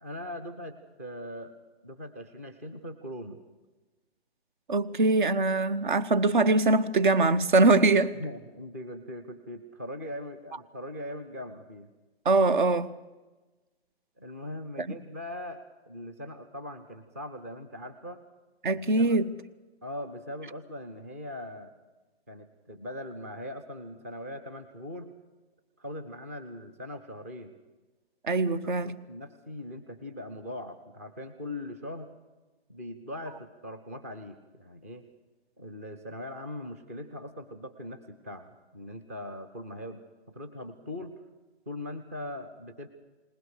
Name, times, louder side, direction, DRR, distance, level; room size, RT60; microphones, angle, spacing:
voice 1, 0.0-1.5 1.8-3.4 8.2-11.9 14.2-18.2 18.7-19.2 19.8-21.7 22.3-25.1 25.8-27.5 28.6-32.1 32.7-35.1 35.6-40.0 40.3-41.1 41.7-42.9, left 1 dB, 15° right, 0.6 m, -40 dB
voice 2, 4.7-8.2 12.2-12.9 18.6-19.3 28.2-28.9, right 2 dB, 50° right, 1.0 m, -23 dB
20.0 x 20.0 x 6.4 m
hypercardioid pair, 170°, 32 cm